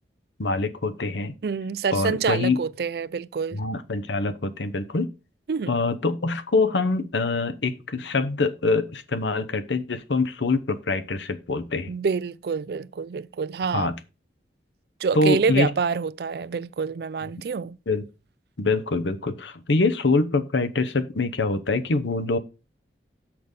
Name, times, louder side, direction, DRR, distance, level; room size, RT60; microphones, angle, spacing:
voice 1, 0.4-1.4 1.9-2.6 3.5-5.1 5.7-11.9 13.7-14.0 15.1-15.7 17.9-18.0 18.6-22.4, left 3 dB, 85° left, 0.8 m, -24 dB
voice 2, 1.4-3.6 5.5-5.8 11.9-13.9 15.0-17.8, right 5 dB, 60° right, 0.4 m, -27 dB
6.4 x 6.0 x 5.2 m
head